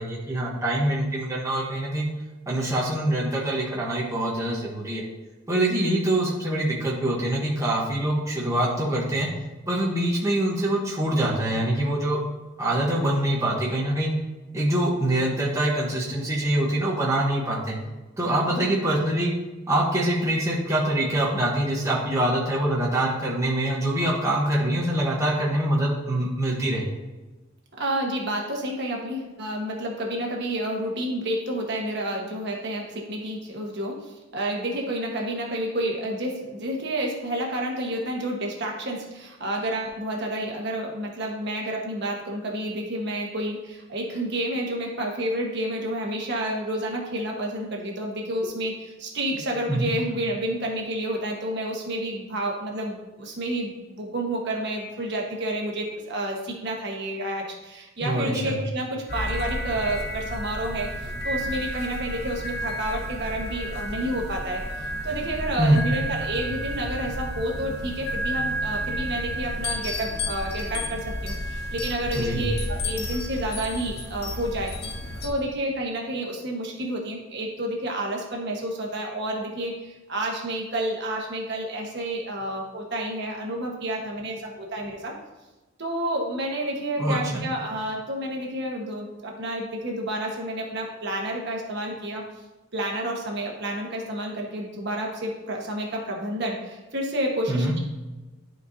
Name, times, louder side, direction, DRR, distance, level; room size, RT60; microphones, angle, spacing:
voice 1, 0.0-2.1 2.5-5.0 5.5-9.3 9.7-12.2 12.6-14.1 14.5-17.8 18.2-19.3 19.7-26.9 49.7-49.9 58.0-58.5 65.6-65.9 72.1-72.4 87.0-87.4 97.5-97.7, right 1 dB, 15° right, -4 dB, 1.1 m, -24 dB
voice 2, 27.8-60.9 61.2-74.7 75.2-85.1 85.8-92.2 92.7-97.8, right 1 dB, 55° right, 0 dB, 1.3 m, -30 dB
sound 1, 59.1-75.3, equal, 50° left, 0.7 m, -31 dB
11.5 x 4.5 x 2.7 m, 1.1 s
head